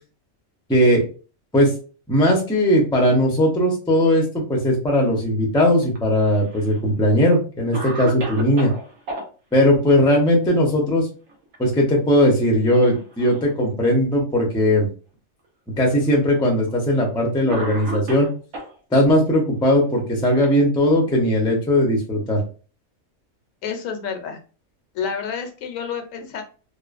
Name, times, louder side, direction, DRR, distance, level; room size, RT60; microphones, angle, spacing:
voice 1, 0.7-1.0 1.5-1.7 2.1-8.7 9.5-11.1 11.6-14.9 15.8-18.3 18.9-22.4, equal, 5° left, -1 dB, 0.3 m, -18 dB
Cough, 5.9-6.8 7.3-7.4 7.7-9.3 11.1-11.6 11.9-12.0 12.8-13.5 14.3-14.4 15.4-15.5 16.7-16.9 17.5-18.7 19.7-21.1, right 1 dB, 70° right, 1.1 m, -33 dB
voice 2, 23.6-24.4 24.9-26.4, left 6 dB, 75° left, 5 dB, 0.9 m, -29 dB
2.9 x 2.0 x 2.4 m, 0.37 s
omnidirectional pair, 1.4 m